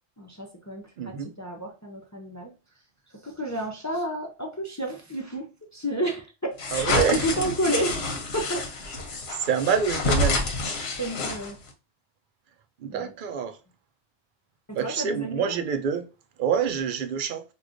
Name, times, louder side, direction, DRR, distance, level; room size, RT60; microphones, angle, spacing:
voice 1, 0.2-2.5 3.2-5.5 5.7-8.0 8.3-8.7 11.0-11.6 12.9-13.1 14.7-15.5, right 1 dB, 25° left, 0.4 m, -31 dB
voice 2, 1.0-1.3 6.7-7.3 9.1-10.4 12.8-13.6 14.7-16.1 16.4-17.4, right 7 dB, 60° right, 0.6 m, -26 dB
sound 1, 6.6-11.7, left 2 dB, 65° left, 1.0 m, -28 dB
4.7 x 2.3 x 2.5 m
omnidirectional pair, 1.2 m